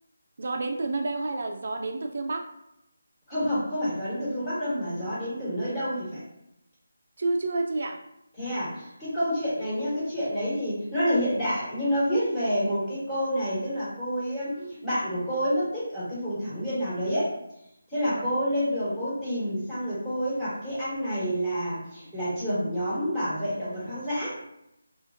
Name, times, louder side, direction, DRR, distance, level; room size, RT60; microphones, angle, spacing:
voice 1, 0.4-2.5 7.2-8.0 18.1-18.3, right 2 dB, 55° right, 3 dB, 0.3 m, -29 dB
voice 2, 3.3-6.2 8.4-17.3 17.9-24.4, equal, 10° left, -10 dB, 1.3 m, -28 dB
2.8 x 2.4 x 2.4 m, 0.82 s
figure-of-eight pair, 165°, 0 cm